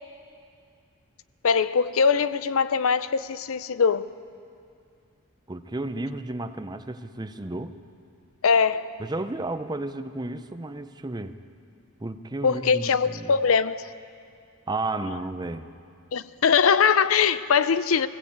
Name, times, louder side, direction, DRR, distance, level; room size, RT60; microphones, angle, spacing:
voice 1, 1.4-4.1 8.4-8.9 12.4-13.9 16.1-18.1, left 6 dB, 65° left, 0.5 m, -22 dB
voice 2, 5.5-7.8 9.0-11.4 12.0-13.4 14.7-15.7, right 2 dB, 20° right, 0.6 m, -32 dB
20.0 x 16.0 x 8.6 m
head